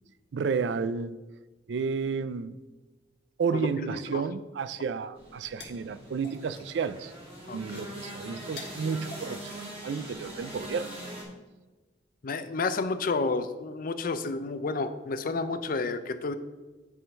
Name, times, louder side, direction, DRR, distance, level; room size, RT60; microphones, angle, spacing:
voice 1, 0.3-1.2 1.7-2.6 3.4-7.1 7.5-10.9, right 5 dB, 65° right, 14 dB, 0.4 m, -31 dB
voice 2, 3.5-4.2 7.5-7.8 12.2-16.3, left 3 dB, 50° left, 11 dB, 0.5 m, -31 dB
sound 1, 5.1-10.4, left 2 dB, 65° left, 1.7 m, -51 dB
sound 2, 5.2-11.2, equal, 30° right, 1.9 m, -42 dB
9.2 x 3.7 x 5.5 m, 1.2 s
head